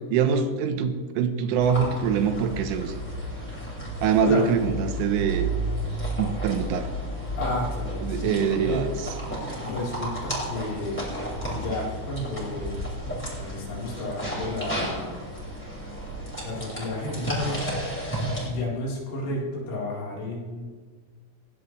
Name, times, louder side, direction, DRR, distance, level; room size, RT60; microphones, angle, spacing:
voice 1, 0.1-2.9 4.0-5.5 6.2-6.9 8.0-8.9, right 6 dB, 90° right, 8 dB, 3.7 m, -24 dB
sound 1, 1.6-18.5, right 1 dB, ahead, 5.3 m, -32 dB
voice 2, 7.4-8.8 9.6-11.0 11.4-12.7 13.4-15.2 16.4-17.7 18.4-20.7, left 1 dB, 90° left, -5 dB, 6.9 m, -32 dB
20.5 x 17.5 x 3.4 m, 1.5 s
omnidirectional pair, 5.5 m